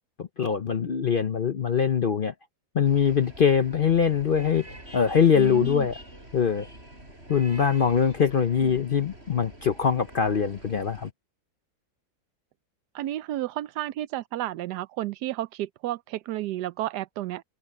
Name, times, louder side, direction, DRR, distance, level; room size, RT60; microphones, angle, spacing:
voice 1, 0.2-2.3 2.7-4.7 4.9-5.9 6.3-6.7 7.3-11.1, left 7 dB, 50° left, 0.6 m, -23 dB
sound 1, 2.8-11.1, right 1 dB, 40° right, 8.1 m, -46 dB
voice 2, 5.3-5.9 8.6-8.7 12.9-17.4, right 14 dB, 85° right, 1.2 m, -32 dB
omnidirectional pair, 1.7 m